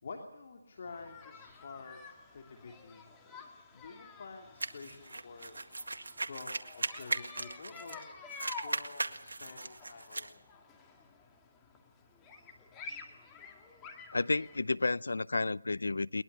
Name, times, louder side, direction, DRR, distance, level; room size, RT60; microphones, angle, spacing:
voice 1, 0.0-2.0 2.3-3.1 3.7-5.6 6.2-8.0 8.6-10.4, left 4 dB, 45° left, 2.9 m, -48 dB
sound 1, 0.8-14.6, left 4 dB, 10° left, 2.2 m, -51 dB
sound 2, 4.6-8.0 8.3-10.3, right 2 dB, 75° right, 1.9 m, -38 dB
voice 2, 14.1-16.2, left 3 dB, 75° left, 0.7 m, -31 dB
21.5 x 21.5 x 7.0 m
figure-of-eight pair, 160°, 0 cm